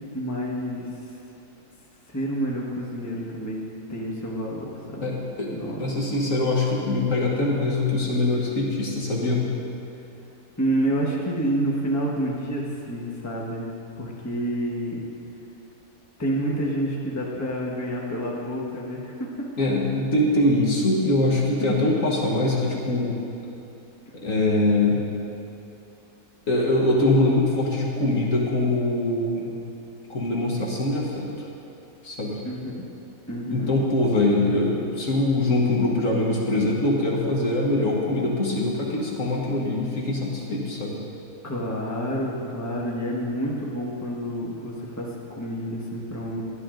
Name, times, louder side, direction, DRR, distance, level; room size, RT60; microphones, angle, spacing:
voice 1, 0.1-0.9 2.1-3.6 3.9-5.0 5.5-5.8 10.6-13.7 14.0-15.0 16.2-19.3 32.4-32.8 33.3-33.7 41.4-46.4, right 1 dB, 10° left, -4 dB, 1.3 m, -28 dB
voice 2, 5.0-5.5 5.8-9.4 19.6-23.2 24.1-25.0 26.5-29.5 30.1-31.5 32.0-32.4 33.5-41.0, left 2 dB, 55° left, -3 dB, 1.8 m, -23 dB
12.5 x 11.0 x 3.9 m, 2.8 s
omnidirectional pair, 1.6 m